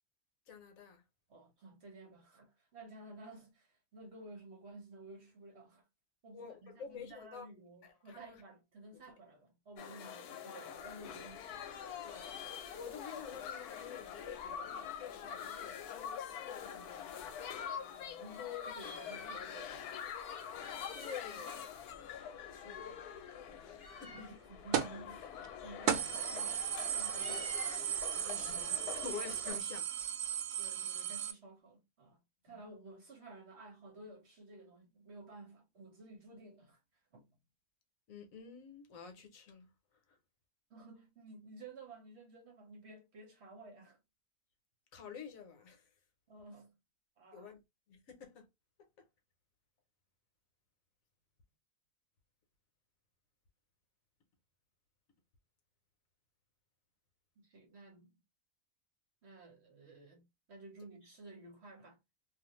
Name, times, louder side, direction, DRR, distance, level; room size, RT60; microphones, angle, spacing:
voice 1, 0.5-1.0 6.3-7.5 7.8-8.4 12.0-17.4 20.9-24.3 28.2-29.9 32.5-32.6 38.1-39.7 40.1-40.2 44.9-45.9 47.3-47.6 47.9-48.5 48.8-49.1, left 6 dB, 65° left, 1.1 m, -50 dB
voice 2, 1.3-5.8 6.2-11.4 17.7-19.9 22.6-22.8 24.1-27.7 30.6-36.8 37.1-37.3 40.7-44.0 46.3-46.7 47.2-47.5 57.4-58.1 59.2-62.0, right 2 dB, 50° right, 1.0 m, -54 dB
sound 1, 9.8-29.6, left 8 dB, 85° left, 1.1 m, -45 dB
Meow, 10.8-11.7 12.0-13.3 13.6-13.7 13.8-16.0 16.6-17.8 18.6-19.8 20.0-20.3 20.5-21.3 21.6-29.5, left 4 dB, 40° left, 0.9 m, -54 dB
sound 2, 24.7-25.0 25.4-25.5 25.9-31.3, right 10 dB, 90° right, 1.1 m, -36 dB
2.5 x 2.5 x 2.9 m
omnidirectional pair, 1.6 m